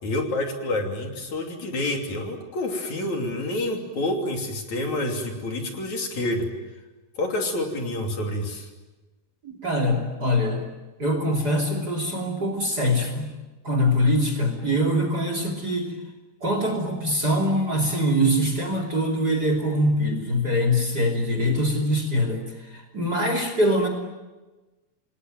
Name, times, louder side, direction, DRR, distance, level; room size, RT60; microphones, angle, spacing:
voice 1, 0.0-6.5 7.2-8.7, left 1 dB, 55° left, 3 dB, 4.2 m, -28 dB
voice 2, 9.4-10.6 11.0-13.3 13.6-15.9 16.4-22.4 22.7-23.9, equal, 30° right, 5 dB, 3.1 m, -23 dB
28.5 x 20.0 x 9.3 m, 1.1 s
omnidirectional pair, 4.2 m